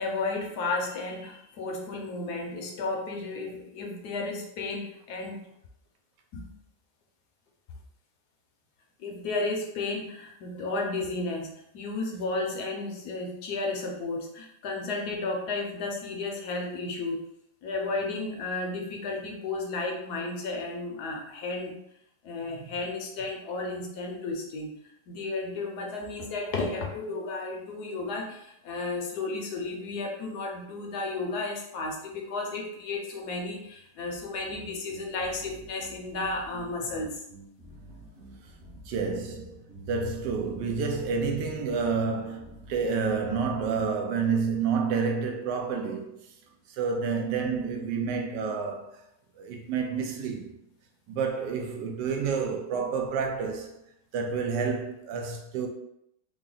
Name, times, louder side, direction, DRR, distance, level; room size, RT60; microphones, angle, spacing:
voice 1, 0.0-5.4 6.3-6.5 9.0-17.2 17.6-21.8 22.2-24.7 25.1-37.2, left 3 dB, 70° left, 1.2 m, -33 dB
sound 1, 34.4-43.9, right 2 dB, 35° right, 0.9 m, -49 dB
voice 2, 38.9-39.6 39.9-46.1 46.7-48.9 49.4-50.5 51.1-53.8 54.1-55.7, right 5 dB, 75° right, 1.2 m, -29 dB
3.8 x 2.1 x 3.7 m
omnidirectional pair, 1.9 m